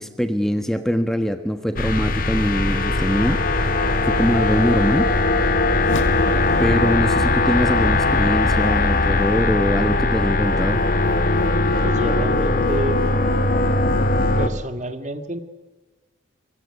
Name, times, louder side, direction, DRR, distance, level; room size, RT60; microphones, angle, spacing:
voice 1, 0.0-5.1 6.6-10.8, equal, ahead, 7 dB, 1.2 m, -23 dB
sound 1, 1.8-14.5, left 2 dB, 45° left, 1.7 m, -20 dB
sound 2, 5.8-11.2, left 1 dB, 80° left, 1.8 m, -29 dB
voice 2, 11.8-13.0 14.4-15.4, right 1 dB, 35° right, 9 dB, 1.9 m, -28 dB
24.5 x 24.0 x 9.9 m, 1.2 s
head